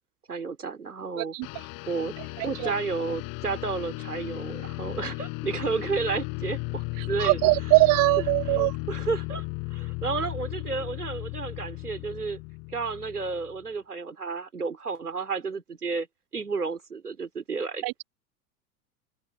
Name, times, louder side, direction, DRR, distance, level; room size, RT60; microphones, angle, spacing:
voice 1, 0.3-1.3 1.9-2.1 2.4-7.4 8.5-12.4 12.7-16.1 16.3-17.8, right 4 dB, 85° right, 3.2 m, -32 dB
sound 1, 1.4-13.6, left 29 dB, 50° left, 5.6 m, -35 dB
voice 2, 7.2-8.7 17.8-18.0, right 26 dB, 45° right, 2.7 m, -22 dB
open air
figure-of-eight pair, 80°, 44 cm